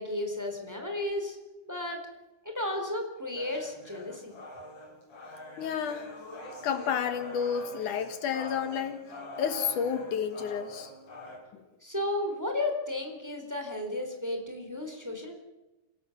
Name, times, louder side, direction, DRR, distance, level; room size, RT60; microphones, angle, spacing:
voice 1, 0.0-1.4 1.7-2.0 2.4-4.4 11.8-15.3, left 1 dB, 5° right, 3 dB, 3.5 m, -33 dB
sound 1, 3.4-11.4, left 1 dB, 55° left, 6.8 m, -44 dB
voice 2, 5.6-6.1 6.6-9.0 9.4-10.9 11.5-11.6, left 7 dB, 75° left, 9 dB, 2.9 m, -30 dB
27.0 x 17.0 x 7.3 m, 1.0 s
omnidirectional pair, 3.6 m